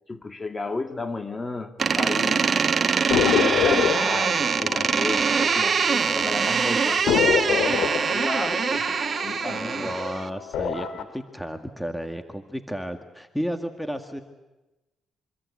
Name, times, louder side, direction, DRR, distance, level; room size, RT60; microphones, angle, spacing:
voice 1, 0.1-2.5 3.4-7.1 7.5-8.9 9.2-9.9, left 3 dB, 25° left, 7 dB, 2.2 m, -33 dB
Door, 1.8-10.3, right 5 dB, 40° right, 1.5 m, -23 dB
sound 1, 3.1-6.2 6.4-6.5 7.1-10.0 10.4-11.0, left 8 dB, 80° left, 2.6 m, -26 dB
voice 2, 9.7-14.2, equal, ahead, 7 dB, 1.9 m, -32 dB
25.5 x 25.0 x 8.6 m, 1.1 s
cardioid pair, 90°, 0 cm